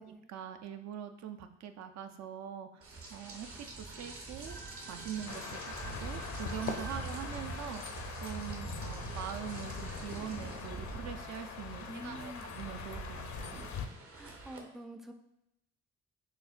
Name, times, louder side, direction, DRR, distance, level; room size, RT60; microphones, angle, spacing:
voice 1, 0.3-3.5 3.8-4.6 4.9-13.6, right 9 dB, 65° right, 7 dB, 0.5 m, -43 dB
Rain, 2.8-14.6, right 3 dB, 50° right, 0.9 m, -45 dB
sound 1, 4.5-11.9, right 4 dB, 90° right, 0.9 m, -54 dB
sound 2, 5.3-13.9, left 6 dB, 65° left, 0.5 m, -43 dB
voice 2, 11.9-12.5 14.2-15.1, right 1 dB, ahead, 5 dB, 0.3 m, -46 dB
6.3 x 2.2 x 2.4 m, 0.87 s
cardioid pair, 90°, 30 cm